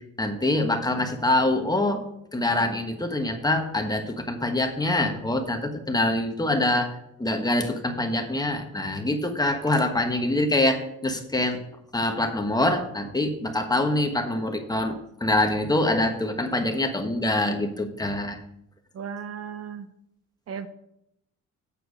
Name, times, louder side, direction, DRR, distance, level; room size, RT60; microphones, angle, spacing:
voice 1, 0.2-2.0 2.3-11.6 11.9-18.4, left 1 dB, 15° left, 4 dB, 1.3 m, -25 dB
voice 2, 18.9-19.9 20.5-20.7, right 7 dB, 55° right, 10 dB, 0.7 m, -35 dB
8.5 x 4.6 x 6.3 m, 0.78 s
cardioid pair, 90°, 30 cm